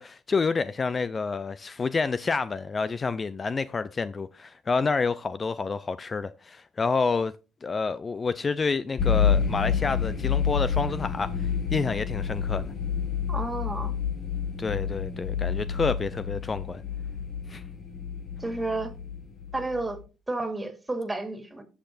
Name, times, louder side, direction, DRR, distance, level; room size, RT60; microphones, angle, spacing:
voice 1, 0.0-7.3 7.6-12.7 14.6-16.8 17.5-17.6, left 4 dB, 35° left, 0.4 m, -28 dB
sound 1, 9.0-19.9, left 7 dB, 50° left, 1.6 m, -29 dB
voice 2, 13.3-13.9 18.4-18.9 19.5-20.0 20.3-21.6, right 2 dB, 15° right, 2.4 m, -31 dB
17.5 x 5.9 x 2.5 m
supercardioid pair, 65°, 0 cm